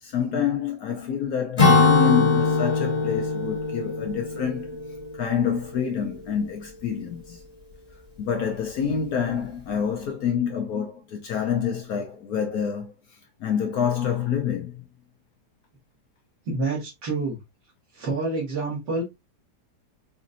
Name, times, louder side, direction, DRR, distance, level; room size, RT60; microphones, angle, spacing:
voice 1, 0.0-4.8 5.1-7.4 8.2-12.9 13.4-14.8, left 7 dB, 65° left, 1.1 m, -27 dB
Acoustic guitar / Strum, 1.6-5.2, left 4 dB, 20° left, 1.6 m, -21 dB
voice 2, 16.5-17.4 18.0-19.0, right 3 dB, 80° right, 2.3 m, -27 dB
5.1 x 2.6 x 2.5 m
omnidirectional pair, 1.8 m